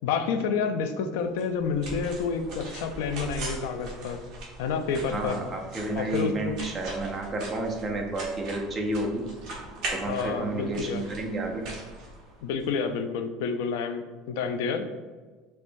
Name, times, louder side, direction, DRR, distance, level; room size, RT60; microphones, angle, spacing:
voice 1, 0.0-4.2 4.6-5.4 5.9-6.6 10.1-11.0 12.4-14.9, left 5 dB, 70° left, 7 dB, 0.3 m, -29 dB
sound 1, 1.4-12.7, right 2 dB, 45° right, 0.9 m, -40 dB
voice 2, 5.1-9.3 9.9-11.7, right 2 dB, 15° right, 1 dB, 0.4 m, -31 dB
4.4 x 2.2 x 2.6 m, 1.4 s
cardioid pair, 170°, 0 cm